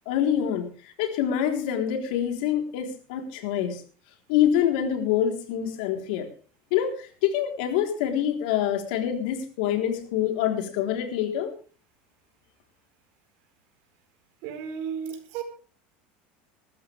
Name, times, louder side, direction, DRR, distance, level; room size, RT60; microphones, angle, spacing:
voice 1, 0.1-3.8 4.3-6.3 6.7-11.5, left 10 dB, 75° left, 4 dB, 3.9 m, -26 dB
voice 2, 14.4-15.4, right 7 dB, 60° right, 6 dB, 4.7 m, -33 dB
20.5 x 14.0 x 3.5 m, 0.38 s
supercardioid pair, 145°, 5 cm